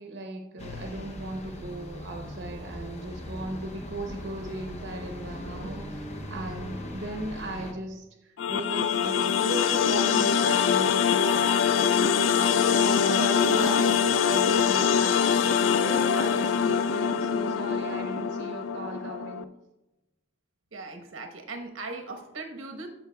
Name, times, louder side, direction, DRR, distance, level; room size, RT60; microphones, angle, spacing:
voice 1, 0.0-6.0 6.3-19.5, right 1 dB, 60° right, 3 dB, 0.7 m, -37 dB
sound 1, 0.6-7.7, left 1 dB, 35° left, 0.7 m, -39 dB
sound 2, 8.4-19.4, left 7 dB, 70° left, 0.3 m, -24 dB
voice 2, 12.0-12.6 20.7-22.9, right 3 dB, 90° right, 3 dB, 1.1 m, -40 dB
13.5 x 5.5 x 2.3 m, 0.99 s
head